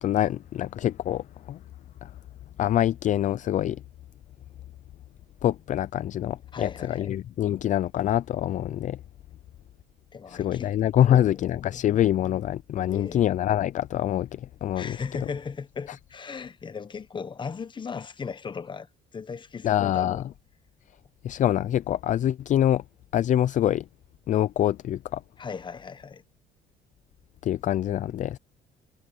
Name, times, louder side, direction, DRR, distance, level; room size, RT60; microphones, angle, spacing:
voice 1, 0.0-1.6 2.0-2.1 2.6-3.8 5.4-9.0 10.3-15.0 19.6-20.2 21.2-22.8 23.1-23.8 24.3-25.2 27.4-28.4, left 11 dB, 45° left, 0.5 m, -25 dB
voice 2, 6.5-7.1 10.1-11.9 12.8-13.2 14.8-20.2 25.4-26.2, left 5 dB, 30° left, 1.0 m, -37 dB
cardioid pair, 110°, 17 cm